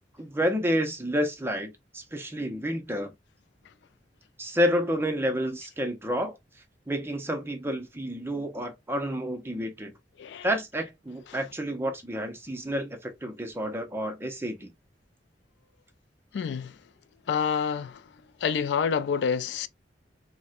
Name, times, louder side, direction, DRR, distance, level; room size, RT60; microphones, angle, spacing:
voice 1, 0.2-3.1 4.4-6.4 6.9-9.9 10.4-14.7, equal, 15° right, 0.6 m, -29 dB
voice 2, 16.3-16.8 17.3-18.1 18.4-19.7, left 6 dB, 75° left, 0.3 m, -28 dB
4.1 x 2.1 x 2.3 m
head